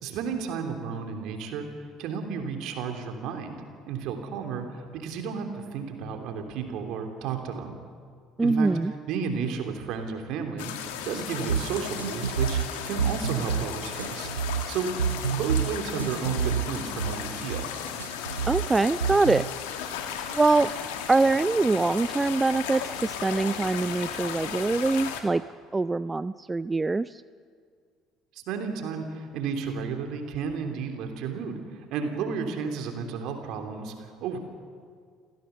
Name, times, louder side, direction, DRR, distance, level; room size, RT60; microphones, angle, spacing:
voice 1, 0.0-1.7 2.0-7.8 8.4-8.7 9.1-14.3 14.7-14.9 15.3-17.7 28.3-34.4, right 6 dB, 65° right, 4 dB, 3.1 m, -32 dB
voice 2, 8.4-8.9 18.5-19.5 20.3-20.7 21.1-25.4 25.7-27.2, right 3 dB, 20° right, 16 dB, 0.4 m, -24 dB
sound 1, 10.6-25.2, left 8 dB, 75° left, 2.0 m, -35 dB
sound 2, 11.5-19.5, right 7 dB, 90° right, 0.5 m, -29 dB
28.5 x 16.0 x 7.0 m, 2.1 s
hypercardioid pair, 60°, 0 cm